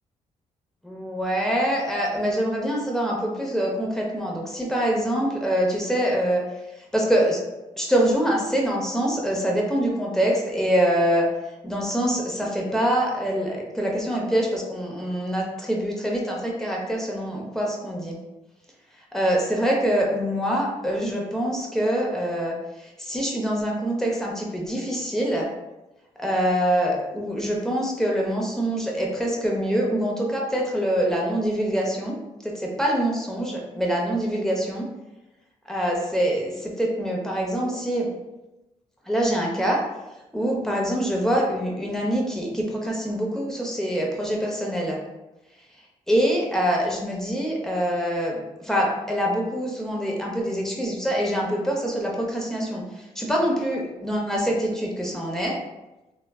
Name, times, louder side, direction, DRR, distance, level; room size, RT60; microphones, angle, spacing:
voice 1, 0.8-6.4 6.9-7.4 7.8-11.3 11.6-18.2 19.1-25.5 26.2-32.1 32.4-34.9 35.7-38.1 39.1-39.8 40.3-45.0 46.1-55.6, equal, 5° left, -2 dB, 0.8 m, -25 dB
3.2 x 2.1 x 2.3 m, 1.0 s
supercardioid pair, 50°, 16 cm